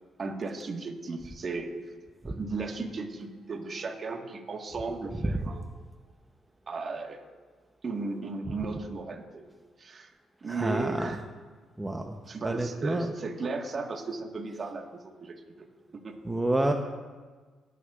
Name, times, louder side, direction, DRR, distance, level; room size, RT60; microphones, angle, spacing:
voice 1, 0.2-1.7 2.2-5.6 6.7-7.2 7.8-9.4 9.8-10.1 10.4-11.2 12.3-15.7 15.9-16.1, right 3 dB, 45° right, 3 dB, 1.5 m, -35 dB
voice 2, 10.5-11.2 11.8-12.2 12.4-13.1 16.2-16.7, right 1 dB, 15° right, 4 dB, 0.8 m, -28 dB
20.0 x 9.5 x 2.5 m, 1.4 s
cardioid pair, 90°, 0 cm